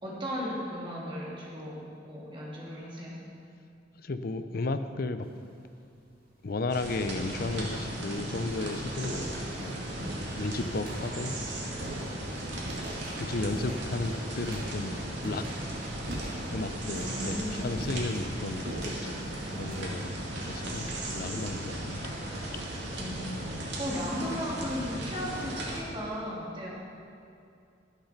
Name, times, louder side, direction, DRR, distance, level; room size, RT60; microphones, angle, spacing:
voice 1, 0.0-3.2 17.0-18.0 22.9-23.3 23.8-26.7, equal, 30° right, -5 dB, 2.7 m, -36 dB
voice 2, 4.0-5.3 6.4-9.8 10.4-11.4 13.2-15.5 16.5-20.2 20.5-22.1, left 3 dB, 55° left, 10 dB, 0.6 m, -34 dB
sound 1, 5.2-5.7 6.6-6.7 7.6-7.7 8.0-21.6, equal, 55° right, 2.3 m, -43 dB
sound 2, 6.7-25.8, right 1 dB, 75° right, 2.3 m, -36 dB
12.0 x 8.1 x 5.9 m, 2.5 s
head